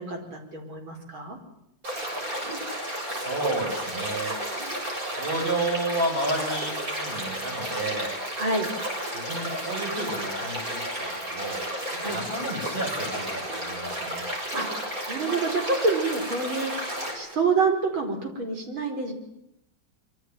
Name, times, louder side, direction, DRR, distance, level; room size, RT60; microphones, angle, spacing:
voice 1, 0.0-1.4 8.4-8.7 12.0-12.2 14.5-14.7 15.1-16.9 17.1-19.1, right 4 dB, 70° right, 4 dB, 5.6 m, -27 dB
sound 1, 1.8-17.1, right 1 dB, 40° right, 7.9 m, -32 dB
voice 2, 3.1-4.3 5.2-8.1 9.1-11.6 12.0-14.2, right 2 dB, 25° right, 2 dB, 6.7 m, -31 dB
26.0 x 24.5 x 9.3 m, 0.77 s
omnidirectional pair, 2.3 m